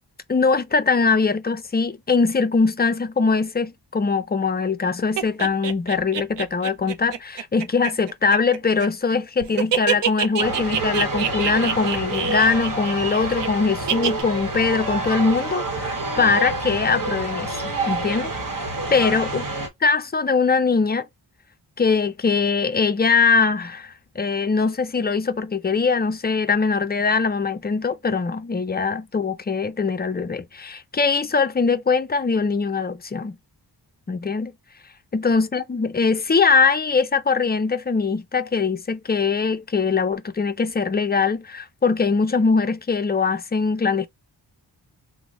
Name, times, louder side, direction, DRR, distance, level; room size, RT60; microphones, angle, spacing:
voice 1, 0.3-19.5 19.8-21.1 21.8-33.4 34.1-34.5 35.1-44.1, left 4 dB, 25° left, 0.3 m, -22 dB
sound 1, 5.2-9.2 9.4-13.5 13.9-14.2, right 8 dB, 85° right, 0.6 m, -26 dB
sound 2, 10.4-19.7, right 2 dB, 50° right, 1.0 m, -28 dB
3.1 x 2.0 x 3.7 m
wide cardioid pair, 140°, 42 cm